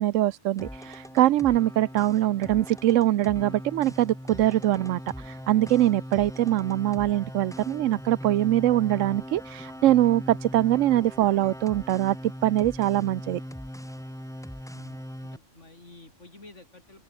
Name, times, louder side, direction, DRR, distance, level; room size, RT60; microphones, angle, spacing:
voice 1, 0.0-13.4, right 13 dB, 85° right, 1.0 m, -23 dB
sound 1, 0.6-15.4, equal, 5° left, 1.9 m, -40 dB
voice 2, 14.7-17.0, left 2 dB, 70° left, 5.2 m, -51 dB
open air
omnidirectional pair, 1.3 m